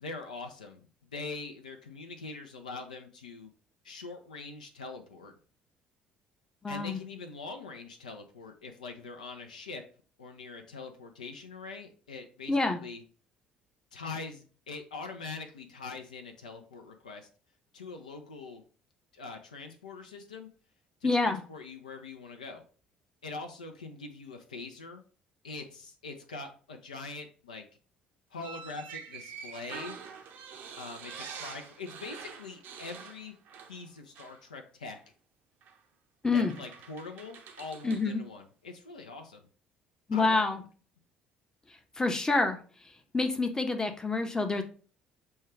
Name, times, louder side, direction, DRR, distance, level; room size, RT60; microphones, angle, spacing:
voice 1, 0.0-3.5 3.8-5.3 6.7-9.8 10.2-13.0 13.9-17.3 17.7-18.6 19.1-20.5 21.0-22.6 23.2-25.0 25.4-27.6 28.3-30.0 30.8-33.3 33.7-35.0 36.3-39.4 40.1-40.4, left 3 dB, 80° left, 4 dB, 0.4 m, -43 dB
voice 2, 6.6-7.0 12.5-12.8 21.0-21.4 36.2-36.5 37.8-38.2 40.1-40.6 42.0-42.6 43.1-44.6, left 3 dB, 15° left, 6 dB, 0.7 m, -27 dB
sound 1, 28.4-33.9 34.1-34.4 35.6-35.8 36.3-38.1, right 6 dB, 55° right, 0.6 m, -46 dB
6.3 x 2.2 x 3.2 m, 0.39 s
figure-of-eight pair, 55°, 4 cm